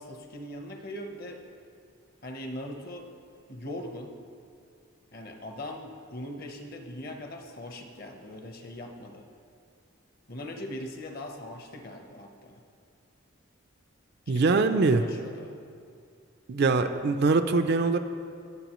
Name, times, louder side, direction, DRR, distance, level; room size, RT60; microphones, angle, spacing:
voice 1, 0.0-1.4 2.2-3.1 3.5-4.1 5.1-9.3 10.3-12.6 14.3-15.5 16.8-17.5, left 1 dB, 45° left, 4 dB, 0.9 m, -40 dB
voice 2, 14.3-15.0 16.5-18.0, right 3 dB, 50° right, 8 dB, 0.4 m, -23 dB
18.5 x 7.2 x 3.0 m, 2.4 s
head